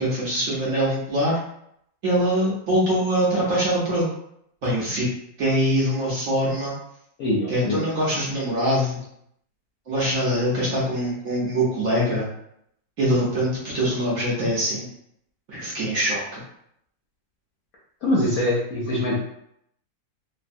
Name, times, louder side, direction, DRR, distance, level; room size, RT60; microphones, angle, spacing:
voice 1, 0.0-1.4 2.0-4.1 4.6-5.1 5.4-6.8 7.5-9.0 9.9-12.3 13.0-14.9 15.5-16.4, equal, 60° right, -7 dB, 1.0 m, -23 dB
voice 2, 7.2-7.8 18.0-19.2, left 1 dB, 65° left, -5 dB, 0.9 m, -23 dB
3.3 x 2.1 x 2.5 m, 0.73 s
omnidirectional pair, 2.0 m